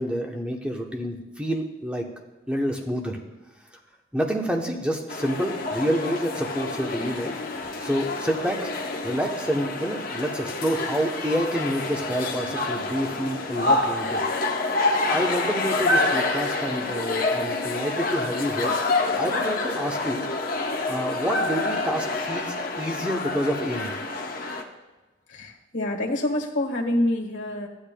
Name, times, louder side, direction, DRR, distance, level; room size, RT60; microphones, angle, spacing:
voice 1, 0.0-2.1 2.5-3.2 4.1-7.4 7.8-8.7 9.0-14.2 15.1-18.7 19.1-20.3 20.8-23.9, equal, 5° right, 1 dB, 0.8 m, -28 dB
sound 1, 5.1-24.6, left 2 dB, 45° left, 0.8 m, -27 dB
voice 2, 25.3-27.7, left 1 dB, 70° left, 0 dB, 1.5 m, -26 dB
14.0 x 10.0 x 2.2 m, 1.1 s
head